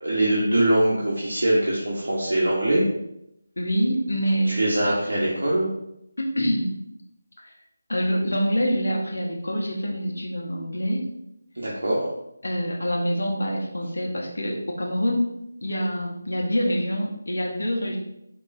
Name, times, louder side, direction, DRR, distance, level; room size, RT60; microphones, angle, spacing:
voice 1, 0.0-2.8 4.4-5.7 11.5-12.1, right 1 dB, 65° right, -5 dB, 1.1 m, -22 dB
voice 2, 3.6-4.6 6.2-6.7 7.4-7.5 7.9-11.1 12.4-15.3 15.6-18.0, equal, 65° left, -1 dB, 0.9 m, -25 dB
4.6 x 3.5 x 2.6 m, 0.82 s
figure-of-eight pair, 160°, 0 cm